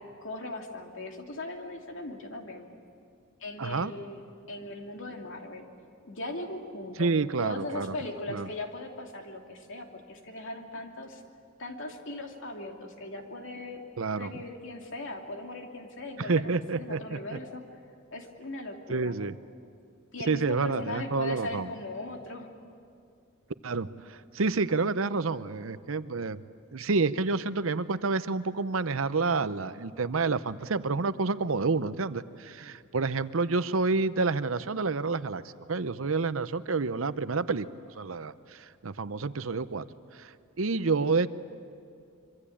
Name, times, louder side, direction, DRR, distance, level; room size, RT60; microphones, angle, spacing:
voice 1, 0.2-2.7 3.4-4.2 4.5-5.7 6.0-7.1 7.4-11.2 11.6-13.8 14.2-17.6 18.1-19.1 20.1-22.5, left 2 dB, 65° left, 2 dB, 2.8 m, -39 dB
voice 2, 3.6-3.9 7.0-7.9 8.3-8.5 14.0-14.3 16.2-17.4 18.9-19.3 20.3-21.7 23.6-26.4 26.7-35.4 35.7-37.7 37.9-39.9 40.2-41.3, right 4 dB, 70° right, 14 dB, 0.8 m, -29 dB
25.5 x 24.5 x 8.6 m, 2.4 s
head